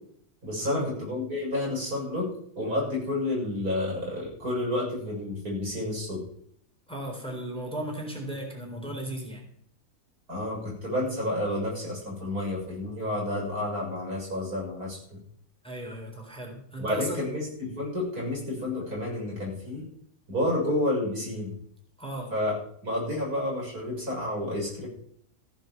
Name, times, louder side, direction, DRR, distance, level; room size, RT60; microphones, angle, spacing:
voice 1, 0.4-2.3 2.6-6.2 10.3-15.0 16.8-19.8 20.3-21.5 22.3-22.5 22.8-24.9, left 1 dB, 75° right, -3 dB, 7.2 m, -30 dB
voice 2, 6.9-9.5 15.6-17.3 22.0-22.3, right 1 dB, 5° left, 0 dB, 3.8 m, -36 dB
15.0 x 7.7 x 7.2 m, 0.64 s
omnidirectional pair, 1.6 m